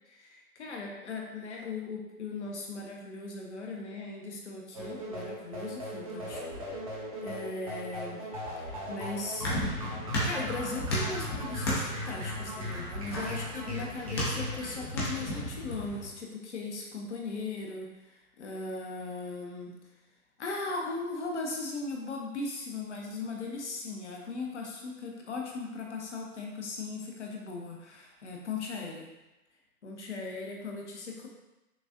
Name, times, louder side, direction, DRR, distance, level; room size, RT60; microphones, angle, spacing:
voice 1, 0.1-6.4 7.2-8.2 8.6-9.5 10.2-19.7 20.4-29.1 29.8-31.3, left 3 dB, 50° left, 0 dB, 0.8 m, -38 dB
sound 1, 4.7-14.7, left 1 dB, 25° right, 0.6 m, -38 dB
sound 2, 8.8-16.1, equal, 15° left, 0.6 m, -35 dB
6.0 x 2.4 x 2.6 m, 1.0 s
figure-of-eight pair, 130°, 46 cm